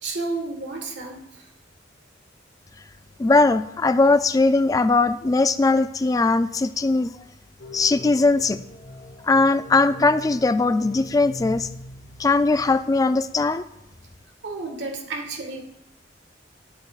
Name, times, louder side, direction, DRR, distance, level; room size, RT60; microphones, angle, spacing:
voice 1, 0.0-1.5 14.4-15.6, right 3 dB, 80° right, 3 dB, 1.6 m, -31 dB
voice 2, 3.2-7.1 7.7-8.6 9.2-11.7 12.2-13.6, left 3 dB, 20° left, 12 dB, 0.3 m, -20 dB
sound 1, 7.6-13.0, left 1 dB, 70° left, 1.3 m, -41 dB
11.5 x 8.3 x 2.4 m, 0.85 s
head